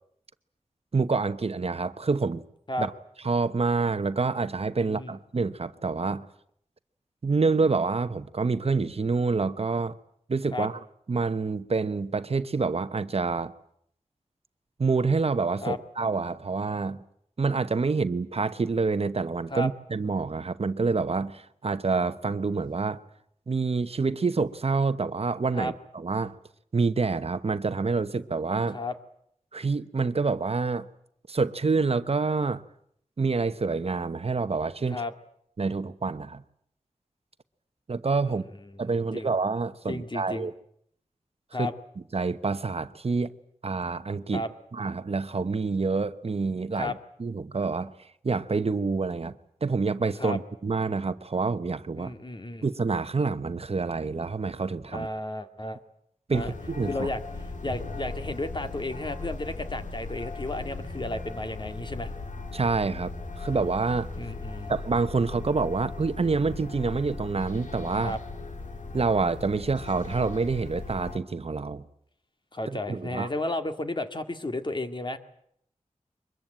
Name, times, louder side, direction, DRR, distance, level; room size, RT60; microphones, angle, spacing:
voice 1, 0.9-2.4 2.8-2.9 3.2-6.3 7.2-9.9 10.3-10.8 11.1-13.5 14.8-17.0 17.4-23.0 23.5-26.3 26.7-28.8 29.5-30.9 31.3-32.6 33.2-35.0 35.6-36.4 37.9-38.4 38.8-40.5 41.6-41.7 42.1-43.3 43.6-44.4 44.7-47.9 48.2-49.3 49.6-52.1 52.6-55.1 56.3-57.1 62.5-64.1 64.7-68.2 68.9-71.8 72.7-73.3, right 4 dB, 55° right, 0.9 m, -27 dB
voice 2, 4.8-5.1 10.5-10.7 15.6-15.8 19.5-19.7 25.5-25.7 28.7-28.9 34.9-35.1 38.7-39.3 39.9-40.5 41.5-41.7 44.3-44.5 46.7-47.0 50.2-50.4 52.0-52.7 54.9-55.8 56.3-56.5 56.8-62.1 64.2-64.7 68.0-68.2 72.5-75.2, left 2 dB, 40° left, 1.9 m, -33 dB
sound 1, 56.3-71.2, left 3 dB, 80° left, 2.5 m, -38 dB
23.5 x 21.0 x 9.0 m
wide cardioid pair, 90°, 13 cm